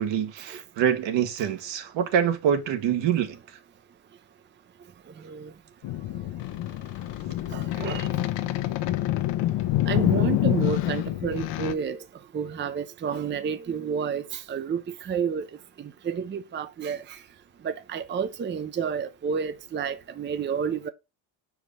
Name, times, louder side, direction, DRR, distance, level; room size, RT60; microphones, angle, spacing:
voice 1, 0.0-3.4, right 9 dB, 65° right, 1.5 m, -25 dB
sound 1, 5.8-11.7, left 15 dB, 70° left, 0.9 m, -27 dB
voice 2, 7.5-8.2 9.9-12.0 12.3-15.5 15.8-17.2 17.6-20.9, right 6 dB, 25° right, 0.6 m, -30 dB
5.0 x 4.8 x 5.3 m
cardioid pair, 105°, 46 cm